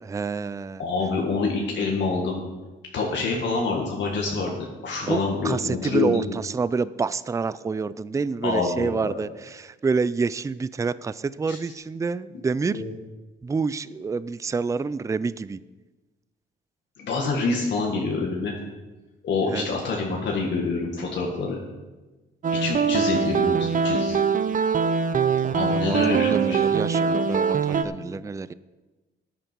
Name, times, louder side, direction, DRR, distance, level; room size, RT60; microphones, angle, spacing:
voice 1, 0.0-0.8 5.1-12.8 13.4-15.6 19.5-19.7 25.4-26.0 26.3-28.5, right 4 dB, 15° right, 17 dB, 0.4 m, -28 dB
voice 2, 0.8-2.4 2.9-4.5 4.8-6.2 8.4-9.2 11.5-11.6 12.7-12.9 17.0-18.6 19.2-21.6 22.5-24.2 25.5-26.7, left 4 dB, 65° left, -1 dB, 1.9 m, -26 dB
sound 1, 22.4-27.8, right 6 dB, 40° right, 0.8 m, -23 dB
13.5 x 9.0 x 4.6 m, 1.2 s
cardioid pair, 90°, 20 cm